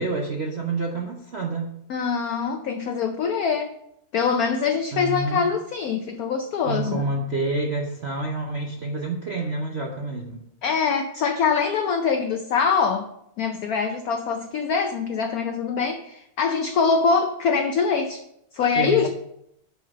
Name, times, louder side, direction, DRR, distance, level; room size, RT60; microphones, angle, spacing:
voice 1, 0.0-1.8 4.9-5.5 6.6-10.5 18.8-19.1, right 2 dB, 90° right, 1 dB, 0.5 m, -28 dB
voice 2, 1.9-3.7 4.1-7.1 10.6-13.1 13.4-18.2 18.5-19.1, left 5 dB, 85° left, 6 dB, 0.8 m, -23 dB
5.7 x 5.6 x 6.1 m, 0.75 s
omnidirectional pair, 2.3 m